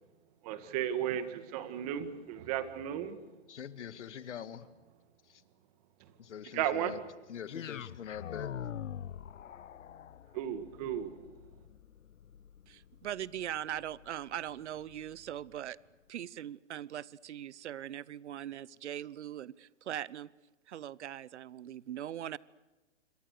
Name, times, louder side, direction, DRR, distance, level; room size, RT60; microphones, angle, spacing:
voice 1, 0.4-3.2 6.5-7.0 10.3-11.2, right 10 dB, 30° right, 10 dB, 2.1 m, -34 dB
voice 2, 3.5-4.7 5.3-5.4 6.2-7.0 7.3-8.5, left 8 dB, 70° left, 11 dB, 1.9 m, -43 dB
sound 1, 7.5-15.7, left 9 dB, 85° left, 1.0 m, -46 dB
voice 3, 12.7-15.8 16.1-20.3 20.7-22.4, right 11 dB, 65° right, 21 dB, 0.9 m, -40 dB
27.5 x 25.5 x 6.7 m, 1.1 s
hypercardioid pair, 160°, 37 cm